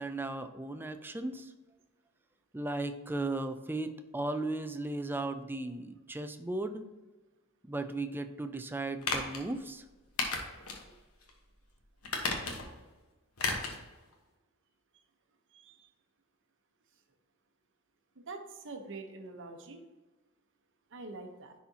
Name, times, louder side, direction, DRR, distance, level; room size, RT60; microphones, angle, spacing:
voice 1, 0.0-1.5 2.5-6.8 7.7-9.8, right 2 dB, 10° right, 9 dB, 0.4 m, -36 dB
sound 1, 9.0-9.4 10.2-10.8 11.2-11.3 12.0-12.8 13.4-13.8 14.1-14.2, left 3 dB, 80° left, 1.2 m, -33 dB
voice 2, 15.5-15.9 18.3-19.8 20.9-21.5, right 3 dB, 60° right, 5 dB, 1.0 m, -45 dB
10.0 x 4.2 x 2.8 m, 1.2 s
head